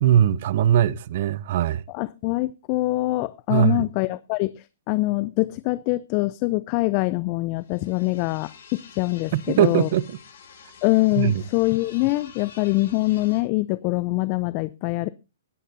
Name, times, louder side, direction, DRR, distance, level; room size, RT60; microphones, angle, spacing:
voice 1, 0.0-1.8 3.5-3.9 9.3-10.2 11.2-11.4, right 10 dB, 50° right, 0.7 m, -20 dB
voice 2, 1.9-9.9 10.8-15.1, left 21 dB, 35° left, 0.5 m, -24 dB
sound 1, 7.6-13.4, left 6 dB, 60° left, 5.7 m, -48 dB
20.5 x 10.0 x 2.6 m
figure-of-eight pair, 125°, 0 cm